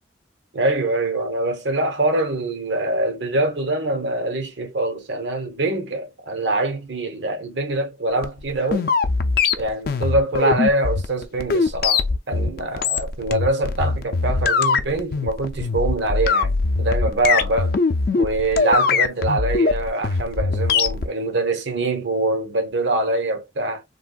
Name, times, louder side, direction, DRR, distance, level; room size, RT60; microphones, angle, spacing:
voice 1, 0.5-8.9 9.6-17.8 18.2-23.8, right 2 dB, 75° right, 1.0 m, -24 dB
sound 1, 8.2-21.1, left 4 dB, 55° left, 0.5 m, -21 dB
3.4 x 2.5 x 2.2 m
head